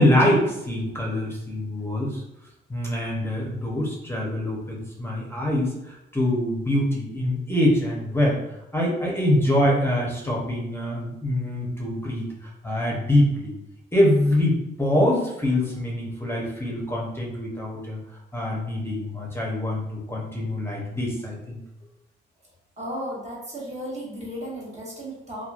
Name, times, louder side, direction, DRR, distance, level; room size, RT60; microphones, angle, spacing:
voice 1, 0.0-2.2 2.7-8.4 8.7-13.5 13.9-18.0 18.3-21.6, left 1 dB, 10° left, -3 dB, 0.7 m, -24 dB
voice 2, 22.8-25.4, equal, 35° right, -5 dB, 1.2 m, -34 dB
3.0 x 2.2 x 2.4 m, 0.87 s
cardioid pair, 90°, 20 cm